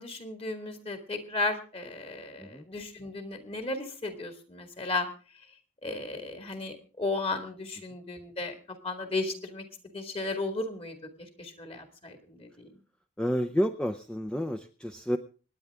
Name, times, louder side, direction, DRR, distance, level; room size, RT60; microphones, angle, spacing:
voice 1, 0.0-5.1 5.8-8.5 8.8-9.6 9.9-11.0 11.4-12.5, left 2 dB, 30° left, 6 dB, 2.1 m, -34 dB
voice 2, 13.2-15.2, equal, 5° left, 6 dB, 0.6 m, -30 dB
26.0 x 10.0 x 3.6 m, 0.36 s
head